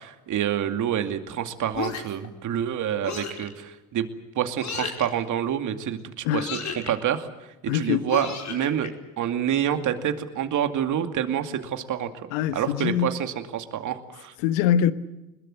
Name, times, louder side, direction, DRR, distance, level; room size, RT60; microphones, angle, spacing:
voice 1, 0.0-4.1 4.4-6.6 6.9-7.3 7.7-8.9 9.2-12.3 12.5-14.3, right 9 dB, 50° right, 2.5 m, -27 dB
sound 1, 1.7-2.3 3.0-3.5 4.6-5.1 6.3-6.9 8.1-8.9, left 6 dB, 45° left, 5.0 m, -33 dB
voice 2, 7.7-8.0 12.3-13.2 14.4-14.9, left 10 dB, 75° left, 1.3 m, -23 dB
25.0 x 21.5 x 7.9 m
hypercardioid pair, 65°, 38 cm